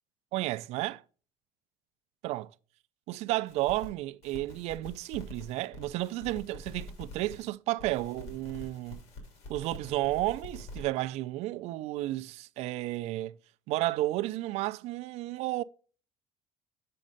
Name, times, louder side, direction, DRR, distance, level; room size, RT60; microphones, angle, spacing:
voice 1, 0.3-1.0 2.2-2.5 3.1-9.0 9.5-13.4 13.7-15.6, right 17 dB, 60° right, 0.4 m, -32 dB
sound 1, 3.5-3.9 4.2-7.5 7.8-10.8, left 1 dB, 60° left, 2.8 m, -46 dB
7.5 x 5.3 x 4.0 m
cardioid pair, 150°, 12 cm